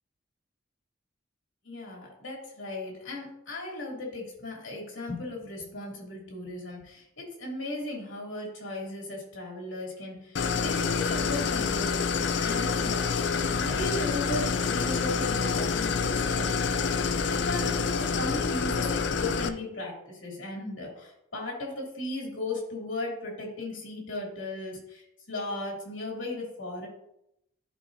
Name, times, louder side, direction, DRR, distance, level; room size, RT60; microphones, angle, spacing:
voice 1, 1.6-13.0 13.5-26.9, left 2 dB, 80° left, -2 dB, 2.8 m, -36 dB
Idling, 10.4-19.5, left 5 dB, 65° left, 0.4 m, -27 dB
12.0 x 5.0 x 2.7 m, 0.80 s
head